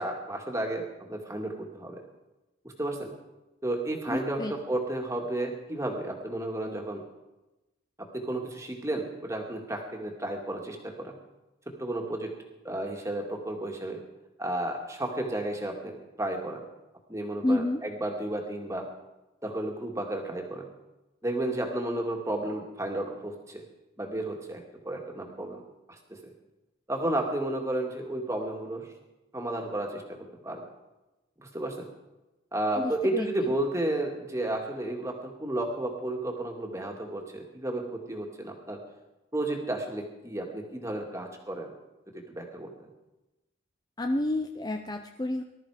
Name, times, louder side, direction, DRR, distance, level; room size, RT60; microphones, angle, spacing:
voice 1, 0.0-2.0 2.8-3.1 3.6-7.0 8.0-11.1 11.7-12.3 12.6-14.0 14.4-16.6 17.1-18.8 19.4-20.7 21.2-23.6 24.0-25.6 25.9-26.3 26.9-28.9 29.3-30.6 31.4-31.8 32.5-38.8 39.3-41.7 42.1-42.7, right 1 dB, 15° right, 2 dB, 2.1 m, -32 dB
voice 2, 4.1-4.6 17.4-17.8 32.8-33.5 44.0-45.4, left 1 dB, 20° left, 5 dB, 0.5 m, -30 dB
19.5 x 13.0 x 5.0 m, 1.0 s
head